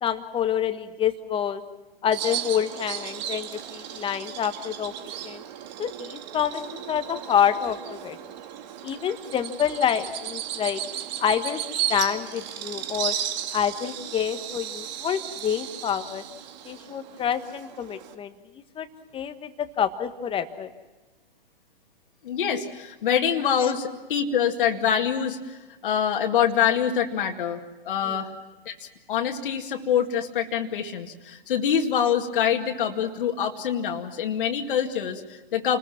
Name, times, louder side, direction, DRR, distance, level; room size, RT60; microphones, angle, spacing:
voice 1, 0.0-1.6 2.0-4.9 5.2-5.4 5.8-8.2 8.8-10.8 11.2-11.6 11.9-13.2 13.5-16.2 16.6-18.3 18.7-18.9 19.1-20.7, left 9 dB, 20° left, 9 dB, 1.5 m, -27 dB
Bird vocalization bird call bird song, 2.1-18.1, right 10 dB, 45° right, 1.9 m, -35 dB
voice 2, 22.2-28.3 28.7-28.8 29.1-35.8, left 8 dB, 60° left, 3 dB, 2.2 m, -25 dB
29.0 x 21.0 x 6.0 m, 1.2 s
hypercardioid pair, 120°, 30 cm